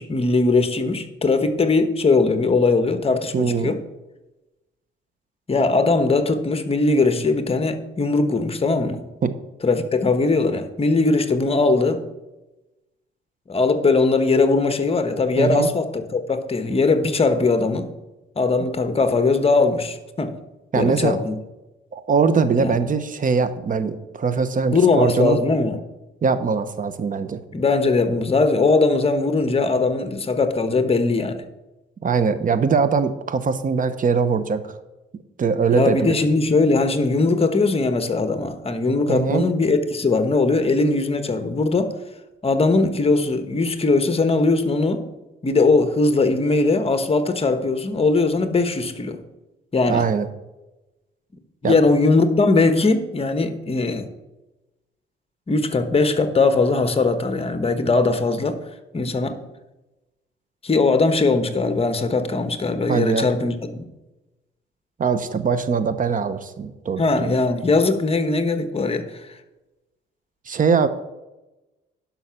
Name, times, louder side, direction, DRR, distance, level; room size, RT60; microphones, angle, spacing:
voice 1, 0.0-3.8 5.5-9.0 9.6-12.0 13.5-17.9 18.4-20.4 20.7-21.3 22.6-22.8 24.7-25.8 27.5-31.4 35.7-41.9 42.4-45.1 45.4-49.2 49.7-50.1 51.6-54.1 55.5-58.6 58.9-59.4 60.6-63.8 67.0-69.4, left 3 dB, 30° left, 9 dB, 1.2 m, -20 dB
voice 2, 3.3-3.7 9.2-9.3 15.4-15.7 20.7-21.2 21.9-25.4 26.2-27.4 32.0-34.7 35.4-36.1 39.1-39.4 49.9-50.3 51.6-51.8 62.9-63.3 65.0-67.3 70.5-70.9, right 5 dB, 40° right, 12 dB, 1.0 m, -21 dB
11.0 x 5.9 x 5.8 m, 1.0 s
cardioid pair, 90°, 20 cm